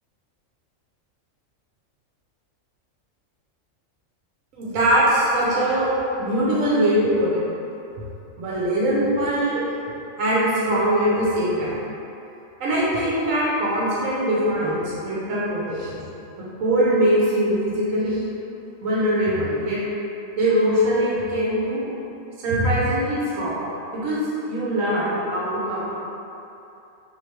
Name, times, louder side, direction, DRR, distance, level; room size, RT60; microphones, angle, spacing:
voice 1, 4.6-5.9 6.2-7.4 8.4-9.6 10.2-11.8 12.6-16.0 16.6-18.2 18.8-19.8 20.4-21.8 22.4-24.2 24.5-25.9, right 1 dB, 80° right, -7 dB, 1.2 m, -22 dB
3.2 x 3.0 x 4.4 m, 2.8 s
omnidirectional pair, 1.4 m